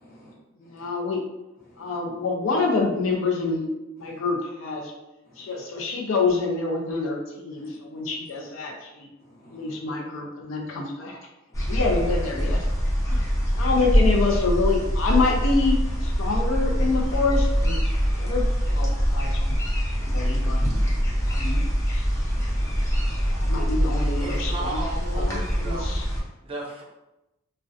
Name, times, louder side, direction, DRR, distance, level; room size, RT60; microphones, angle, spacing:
voice 1, 0.0-0.3 0.8-0.9 1.7-1.9 4.1-4.2 5.3-5.5 7.6-8.1 9.2-9.8 11.5-11.8 13.4-13.7 20.0-20.2 20.6-21.5 22.3-23.5, equal, 50° left, -4 dB, 0.7 m, -44 dB
voice 2, 0.6-1.2 1.8-3.7 4.0-4.9 5.4-9.1 9.5-11.2 11.7-12.6 13.1-13.2 13.6-17.8 18.1-19.6 20.0-20.6 21.2-22.1 23.3-26.1, left 3 dB, 75° left, 1 dB, 0.4 m, -27 dB
sound 1, 11.5-26.2, equal, 15° left, 0.6 m, -24 dB
voice 3, 24.2-26.8, right 2 dB, 30° right, -3 dB, 0.4 m, -36 dB
2.3 x 2.1 x 2.5 m, 0.96 s
head